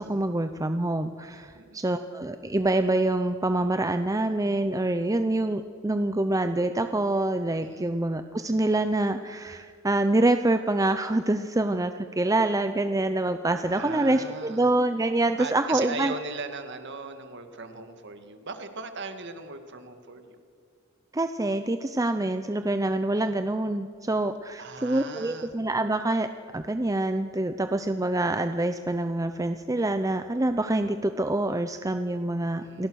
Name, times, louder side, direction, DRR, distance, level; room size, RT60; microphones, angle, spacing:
voice 1, 0.0-16.1 21.1-26.3 26.5-32.9, right 2 dB, 15° right, 8 dB, 0.6 m, -26 dB
voice 2, 7.6-8.0 13.6-14.7 15.4-20.4 24.6-25.6 32.6-32.9, right 4 dB, 55° right, 8 dB, 2.1 m, -38 dB
28.0 x 19.0 x 6.4 m, 2.2 s
head